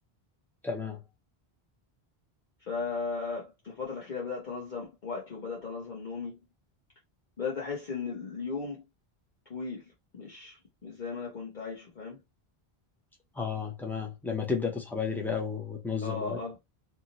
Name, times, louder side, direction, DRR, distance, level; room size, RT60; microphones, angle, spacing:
voice 1, 0.6-1.0 13.4-16.4, left 5 dB, ahead, 0.6 m, -32 dB
voice 2, 2.6-6.4 7.4-8.9 9.5-12.2 16.0-16.6, left 4 dB, 50° left, 1.0 m, -36 dB
2.8 x 2.5 x 2.8 m
omnidirectional pair, 1.1 m